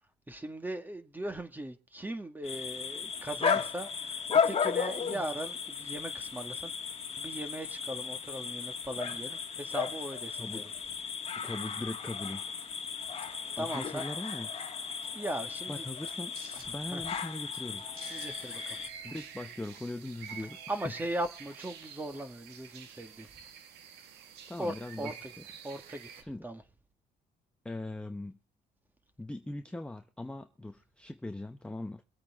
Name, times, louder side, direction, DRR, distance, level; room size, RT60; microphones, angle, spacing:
voice 1, 0.3-6.7 7.1-10.7 13.3-14.1 15.1-15.8 16.9-17.0 18.1-18.8 20.7-23.3 24.6-25.1 25.6-26.6, right 1 dB, 10° right, 1.8 m, -39 dB
sound 1, 2.4-18.9, left 6 dB, 35° left, 1.6 m, -35 dB
voice 2, 10.4-10.7 11.4-12.5 13.6-14.5 15.7-16.3 16.7-17.9 19.0-20.6 24.5-25.1 26.2-26.4 27.6-28.4 29.2-32.0, left 2 dB, 5° left, 0.8 m, -40 dB
sound 2, 13.0-22.5, right 2 dB, 65° right, 4.9 m, -57 dB
sound 3, 18.0-26.2, right 8 dB, 80° right, 1.7 m, -48 dB
24.0 x 8.4 x 3.6 m
cardioid pair, 110°, 17 cm